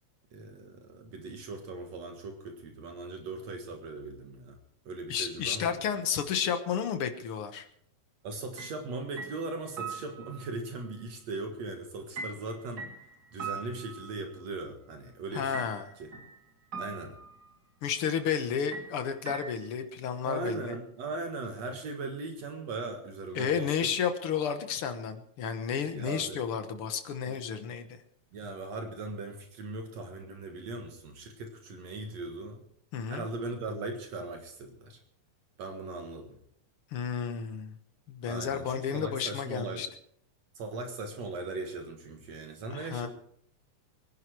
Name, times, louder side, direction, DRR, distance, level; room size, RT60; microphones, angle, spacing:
voice 1, 0.3-4.6 4.9-5.8 8.2-12.9 13.3-15.6 16.0-16.1 16.8-17.2 20.2-23.7 25.9-26.4 27.3-27.4 28.3-32.6 33.1-35.0 35.6-36.4 38.3-39.8 40.6-43.1, right 3 dB, 65° right, 4 dB, 2.8 m, -39 dB
voice 2, 5.1-7.7 15.3-15.9 17.8-20.8 23.4-28.0 32.9-33.3 36.9-37.8 38.1-39.9 42.7-43.1, left 7 dB, 55° left, 8 dB, 1.8 m, -32 dB
sound 1, 8.6-8.8 9.2-10.6 12.2-14.5 15.5-16.4 16.7-17.5 18.7-19.8, right 4 dB, 35° right, 2.9 m, -41 dB
23.0 x 10.5 x 4.8 m, 0.67 s
omnidirectional pair, 3.4 m